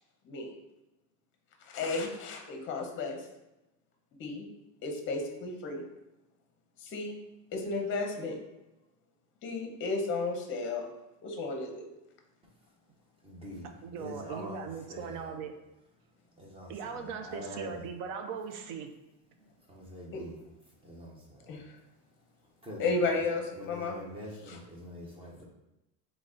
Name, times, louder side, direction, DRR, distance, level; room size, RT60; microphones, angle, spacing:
voice 1, 1.7-3.2 4.2-4.5 4.8-5.8 6.8-7.2 7.5-8.4 9.4-10.9 11.2-11.8 20.1-20.2 21.5-21.7 22.8-24.0 24.4-24.6 25.0-25.1, left 3 dB, 30° left, 3 dB, 0.7 m, -33 dB
voice 2, 13.2-13.7 14.0-15.3 16.4-17.8 19.7-20.4 20.8-21.5 22.6-23.2 23.5-25.5, equal, 15° right, -1 dB, 0.6 m, -45 dB
voice 3, 13.8-15.5 16.7-18.9, right 6 dB, 65° right, 6 dB, 0.7 m, -39 dB
3.9 x 3.2 x 3.8 m, 0.95 s
cardioid pair, 165°, 40 cm